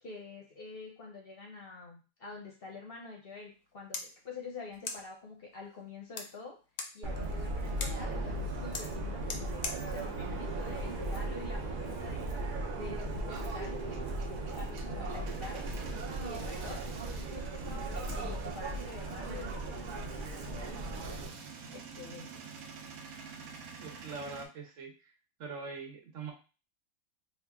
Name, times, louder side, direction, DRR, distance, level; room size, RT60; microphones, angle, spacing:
voice 1, 0.0-6.6 6.9-12.3 12.7-15.7 16.2-16.8 17.1-21.2 21.7-22.3, left 3 dB, 50° left, 0 dB, 0.8 m, -47 dB
sound 1, 3.5-11.5, left 5 dB, 85° left, 1.0 m, -45 dB
Subway metro underground, 7.0-21.3, right 2 dB, 50° right, 0.6 m, -37 dB
Male speech man speaking / Vehicle / Engine starting, 12.8-24.5, right 5 dB, 90° right, 1.0 m, -49 dB
voice 2, 23.8-25.1 25.4-26.3, right 4 dB, 70° right, 2 dB, 1.1 m, -43 dB
2.9 x 2.4 x 3.4 m, 0.33 s
omnidirectional pair, 1.4 m